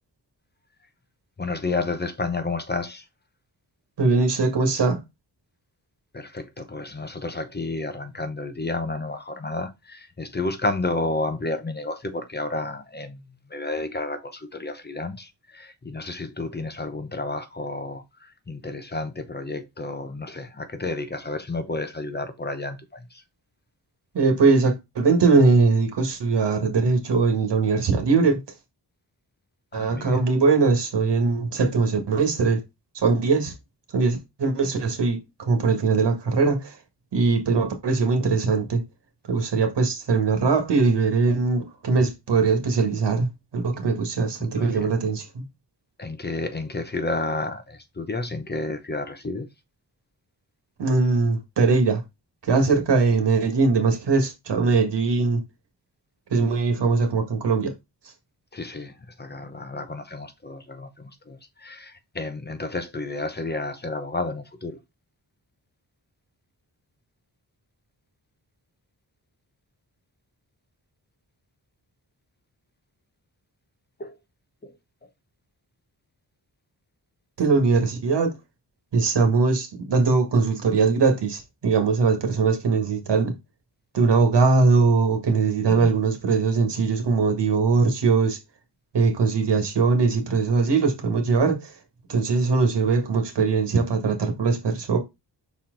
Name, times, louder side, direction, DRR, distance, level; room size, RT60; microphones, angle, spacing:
voice 1, 1.4-3.1 6.1-13.2 13.5-23.2 29.7-30.2 44.4-44.9 46.0-49.5 58.5-64.8 74.0-74.2 74.6-74.7 85.7-85.9, left 2 dB, 25° left, 0.7 m, -31 dB
voice 2, 4.0-5.0 24.1-28.4 29.7-32.6 32.9-33.5 33.9-36.7 37.1-38.8 39.3-45.2 50.8-52.0 52.4-55.4 56.3-57.7 77.4-78.3 78.9-83.3 83.9-88.4 88.9-91.7 92.1-95.0, right 4 dB, 85° right, 1.7 m, -21 dB
5.7 x 4.4 x 3.8 m
wide cardioid pair, 155°, 41 cm